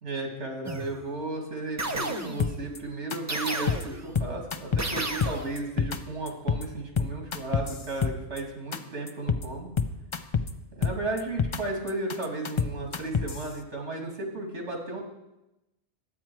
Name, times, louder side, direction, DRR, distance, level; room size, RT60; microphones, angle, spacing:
voice 1, 0.0-9.7 10.7-15.0, right 2 dB, 80° right, 1 dB, 2.4 m, -34 dB
sound 1, 0.7-1.2 1.8-2.6 3.3-4.2 4.8-5.7, right 2 dB, 20° right, 0.5 m, -33 dB
sound 2, 2.4-2.8 3.1-3.2 3.5-3.8 4.2-4.9 5.2-6.0 6.3-6.6 7.0-8.4 8.7-8.8 9.1-9.4 9.8-10.5 10.8-11.6 11.9-13.4, left 6 dB, 40° left, 0.4 m, -27 dB
12.0 x 8.8 x 4.6 m, 0.95 s
omnidirectional pair, 1.2 m